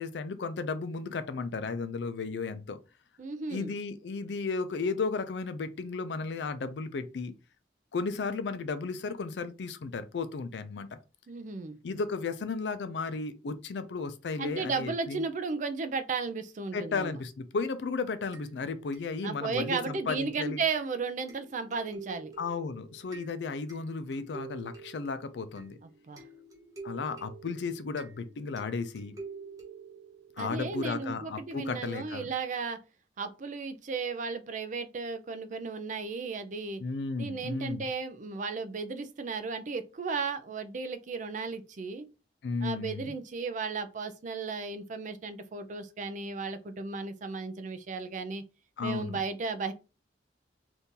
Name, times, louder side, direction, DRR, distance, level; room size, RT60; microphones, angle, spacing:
voice 1, 0.0-2.8 3.5-7.3 7.9-11.0 11.8-15.2 16.7-20.6 22.4-25.8 26.8-29.1 30.4-32.3 36.8-37.9 42.4-43.1 48.8-49.2, left 4 dB, 75° left, 0.4 m, -34 dB
voice 2, 3.2-3.7 11.3-11.8 14.4-17.2 19.2-22.3 26.1-26.2 30.4-32.8 33.2-36.8 37.2-42.0 42.6-48.4 48.8-49.7, right 4 dB, 45° right, 0.4 m, -34 dB
sound 1, 18.3-31.1, right 4 dB, 20° right, 1.0 m, -48 dB
2.8 x 2.6 x 3.6 m
head